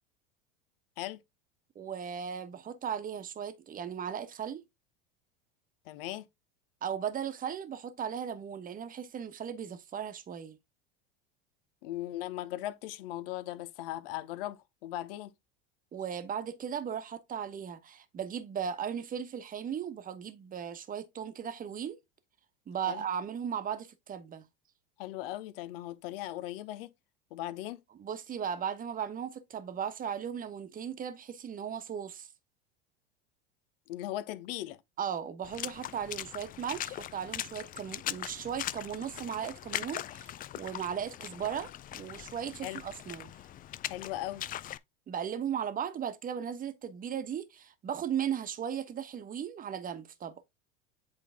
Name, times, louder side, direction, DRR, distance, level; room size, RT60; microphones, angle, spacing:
voice 1, 1.7-4.6 6.8-10.6 15.9-22.0 22.7-24.5 28.0-32.3 35.0-43.3 45.1-50.3, right 8 dB, 30° right, 1.1 m, -37 dB
voice 2, 5.9-6.3 11.8-15.3 22.9-23.0 25.0-26.9 27.3-27.8 33.9-34.8 42.6-42.8 43.9-44.4, left 14 dB, 70° left, 0.9 m, -38 dB
Water / Splash splatter, 35.4-44.8, left 12 dB, 30° left, 0.4 m, -40 dB
8.1 x 3.8 x 3.5 m
hypercardioid pair, 100°, 29 cm